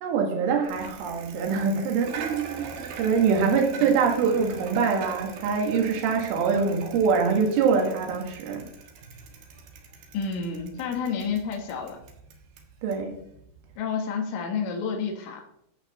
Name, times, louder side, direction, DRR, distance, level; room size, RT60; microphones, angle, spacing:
voice 1, 0.0-2.7 3.0-8.7 12.8-13.2, right 5 dB, 90° right, 2 dB, 4.3 m, -24 dB
Bicycle, 0.6-13.8, right 5 dB, 60° right, 2.9 m, -43 dB
voice 2, 10.1-12.0 13.8-15.4, left 5 dB, 85° left, 1 dB, 4.1 m, -30 dB
12.0 x 6.7 x 6.6 m, 0.74 s
omnidirectional pair, 5.5 m